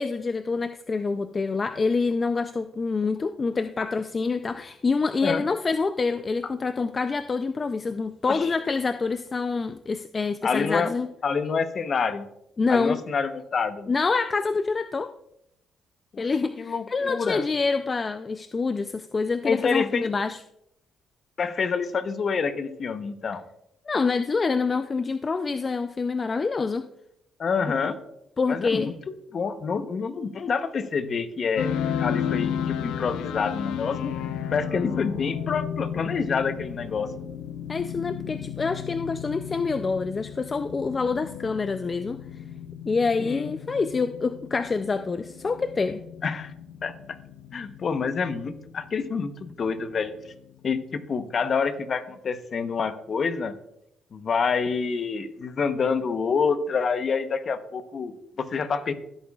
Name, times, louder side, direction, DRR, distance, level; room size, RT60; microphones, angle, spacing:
voice 1, 0.0-11.1 12.6-13.0 13.9-15.1 16.2-20.4 23.9-26.8 28.4-28.9 37.7-42.2 42.9-46.0, left 4 dB, 35° left, 10 dB, 0.4 m, -26 dB
voice 2, 10.4-10.9 11.2-12.3 12.7-13.9 16.1-16.3 16.6-17.5 19.4-20.1 21.4-23.4 27.4-28.0 28.5-28.9 29.3-31.7 32.0-34.2 34.5-37.1 43.2-43.5 46.2-46.5 46.8-46.9 47.5-50.1 50.6-53.5 54.1-58.9, left 5 dB, 50° left, 10 dB, 0.9 m, -27 dB
sound 1, 31.6-51.5, left 9 dB, 90° left, 0.5 m, -34 dB
15.5 x 8.4 x 2.4 m, 0.79 s
cardioid pair, 90°, 0 cm